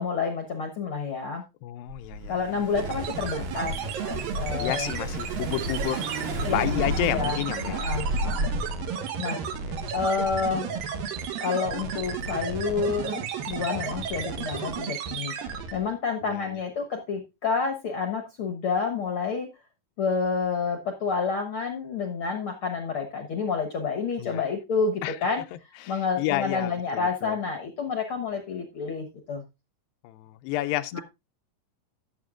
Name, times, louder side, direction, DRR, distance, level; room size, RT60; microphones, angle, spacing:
voice 1, 0.0-1.4 2.3-3.7 4.0-4.9 6.4-7.4 7.7-8.5 9.2-9.4 9.9-10.8 11.4-15.3 15.7-19.5 20.0-25.4 25.9-29.4 30.9-31.0, left 5 dB, 65° left, 1.4 m, -29 dB
voice 2, 1.6-2.4 4.6-6.1 6.5-8.0 9.7-9.8 16.2-16.6 24.2-24.4 25.0-25.2 25.8-27.4 30.0-31.0, left 14 dB, 90° left, 2.4 m, -31 dB
Car / Engine, 1.9-8.8, right 1 dB, 60° right, 3.7 m, -33 dB
sound 1, 2.7-15.9, right 6 dB, 80° right, 2.8 m, -33 dB
15.5 x 7.3 x 2.4 m
omnidirectional pair, 4.1 m